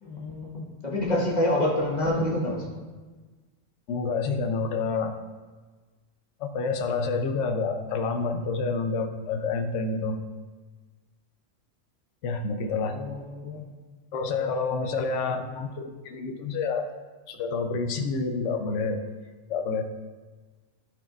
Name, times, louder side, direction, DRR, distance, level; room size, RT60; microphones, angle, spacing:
voice 1, 0.0-2.6 12.8-13.7 15.3-15.4, left 1 dB, 35° left, -4 dB, 1.6 m, -27 dB
voice 2, 3.9-5.1 6.4-10.2 12.2-13.0 14.1-16.9 17.3-19.0 19.5-19.8, left 4 dB, 70° left, 7 dB, 1.0 m, -28 dB
14.5 x 4.8 x 2.4 m, 1.3 s
omnidirectional pair, 1.3 m